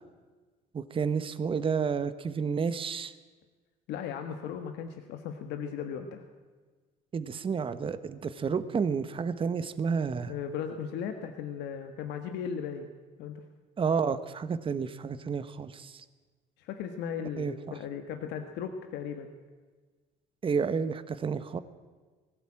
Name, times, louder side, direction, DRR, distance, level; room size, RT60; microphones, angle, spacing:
voice 1, 0.7-3.1 7.1-10.3 13.8-16.0 17.4-17.8 20.4-21.6, right 6 dB, 30° right, 12 dB, 1.1 m, -30 dB
voice 2, 3.9-6.2 10.3-12.9 13.2-13.4 16.6-19.3, left 7 dB, 85° left, 6 dB, 1.5 m, -37 dB
19.5 x 16.0 x 8.8 m, 1.4 s
cardioid pair, 110°, 17 cm